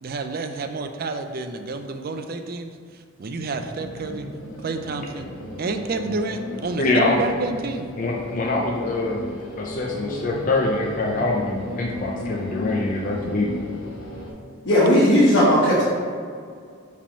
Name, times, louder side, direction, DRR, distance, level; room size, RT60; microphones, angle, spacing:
voice 1, 0.0-4.3 4.6-5.3 5.6-7.9, right 3 dB, 40° right, 6 dB, 0.4 m, -29 dB
sound 1, 3.4-14.3, left 1 dB, 75° left, 1.0 m, -35 dB
voice 2, 6.8-7.2 8.0-9.2 9.6-13.5, left 2 dB, 35° left, -2 dB, 0.4 m, -24 dB
voice 3, 14.6-15.8, equal, 50° left, -8 dB, 1.1 m, -16 dB
5.0 x 3.5 x 5.4 m, 2.2 s
head